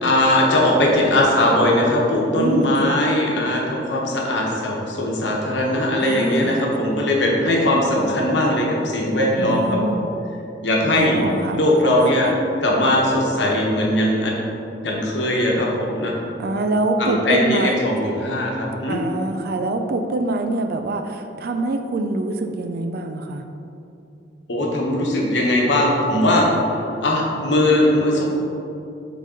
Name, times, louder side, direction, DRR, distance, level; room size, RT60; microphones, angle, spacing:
voice 1, 0.0-10.0 10.6-11.2 11.5-12.3 12.6-14.4 14.8-16.2 17.0-19.0 24.5-26.5 27.0-28.2, left 1 dB, 70° left, -2 dB, 1.1 m, -19 dB
voice 2, 2.4-3.0 6.0-6.6 9.4-10.1 10.8-11.6 16.4-17.7 18.9-23.4, right 2 dB, 55° right, 6 dB, 0.4 m, -25 dB
6.3 x 4.0 x 3.8 m, 2.7 s
head